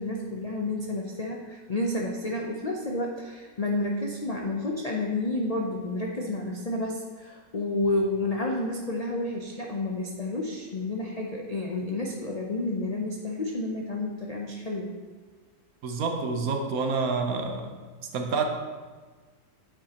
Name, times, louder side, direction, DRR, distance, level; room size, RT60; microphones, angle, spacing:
voice 1, 0.0-14.9, left 2 dB, 85° left, -1 dB, 0.3 m, -30 dB
voice 2, 15.8-17.8 18.1-18.5, right 4 dB, 65° right, 4 dB, 1.2 m, -28 dB
9.1 x 7.2 x 2.9 m, 1.4 s
omnidirectional pair, 1.8 m